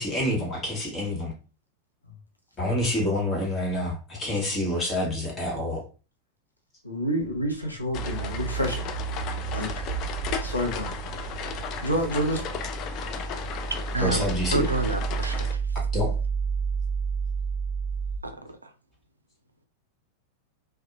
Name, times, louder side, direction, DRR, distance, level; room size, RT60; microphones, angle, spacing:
voice 1, 0.0-1.3 2.6-5.8 14.0-14.7 15.9-16.1, left 1 dB, 20° left, 1.2 m, -27 dB
voice 2, 6.8-8.8 9.5-9.8 10.4-10.9 11.8-12.4, equal, 85° left, 0.6 m, -28 dB
sound 1, 7.2-18.2, right 6 dB, 35° right, 1.2 m, -31 dB
sound 2, 7.9-15.5, left 7 dB, 35° left, 0.3 m, -35 dB
voice 3, 13.9-14.2 14.5-15.6 18.2-18.7, right 2 dB, 80° right, 0.3 m, -29 dB
2.7 x 2.3 x 2.5 m
figure-of-eight pair, 90°, 0 cm